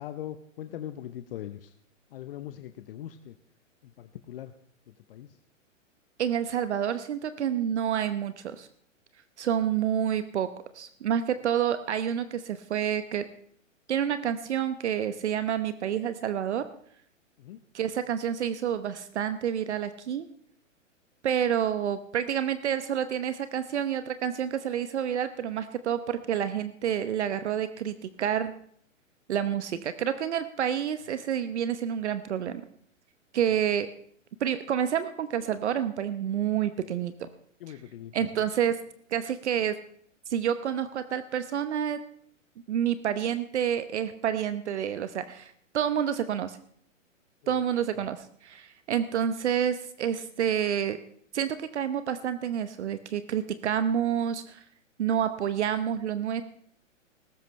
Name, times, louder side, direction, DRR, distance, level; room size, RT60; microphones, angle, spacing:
voice 1, 0.0-1.7 2.1-3.3 4.0-4.5 5.1-5.3 17.4-17.6 37.6-38.1 47.4-47.5, left 11 dB, 45° left, 10 dB, 0.8 m, -40 dB
voice 2, 6.2-8.7 9.4-10.5 10.7-13.2 13.9-16.7 17.7-20.3 21.2-28.5 29.3-32.6 33.3-33.9 34.4-37.3 37.7-37.8 38.1-38.8 39.1-39.8 40.3-42.0 42.7-46.6 47.5-51.0 51.3-54.6 55.0-56.4, right 9 dB, 60° right, 11 dB, 1.0 m, -28 dB
18.5 x 15.5 x 3.2 m, 0.65 s
figure-of-eight pair, 115°, 39 cm